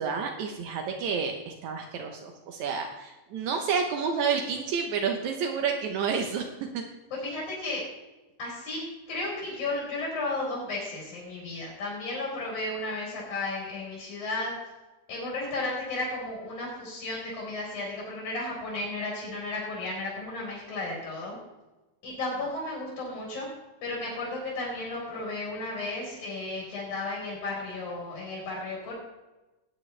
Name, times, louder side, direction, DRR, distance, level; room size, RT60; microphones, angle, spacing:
voice 1, 0.0-6.5 6.7-6.8, right 6 dB, 75° right, 3 dB, 2.3 m, -30 dB
voice 2, 7.2-7.8 8.4-8.8 9.1-14.5 15.1-21.4 22.0-23.5 23.8-28.9, left 2 dB, 80° left, -5 dB, 5.6 m, -34 dB
20.0 x 9.1 x 3.3 m, 1.1 s
omnidirectional pair, 3.4 m